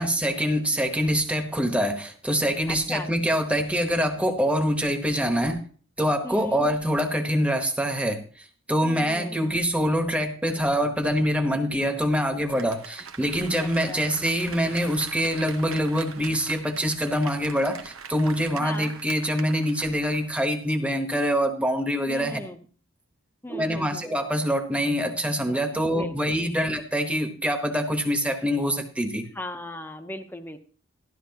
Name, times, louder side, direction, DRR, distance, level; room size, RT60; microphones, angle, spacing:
voice 1, 0.0-5.6 6.0-22.4 23.5-29.3, equal, 5° right, 5 dB, 1.1 m, -25 dB
voice 2, 2.7-3.1 6.2-6.7 8.8-9.4 13.6-14.0 18.6-18.9 22.1-22.6 23.4-24.1 25.9-26.4 29.3-30.6, left 1 dB, 10° left, 7 dB, 0.7 m, -38 dB
Applause, 12.3-20.5 20.9-21.0, right 6 dB, 90° right, 1.0 m, -42 dB
12.5 x 12.0 x 2.9 m, 0.43 s
head